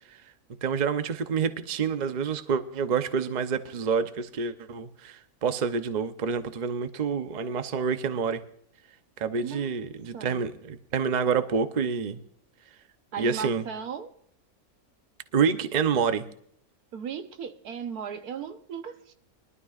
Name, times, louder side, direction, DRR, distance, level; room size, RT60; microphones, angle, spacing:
voice 1, 0.6-8.4 9.2-12.2 13.2-13.6 15.3-16.3, right 6 dB, 40° right, 0.7 m, -27 dB
voice 2, 9.4-9.9 10.1-10.4 13.1-14.1 16.9-19.1, right 7 dB, 90° right, 1.5 m, -37 dB
22.0 x 12.5 x 2.5 m
omnidirectional pair, 1.6 m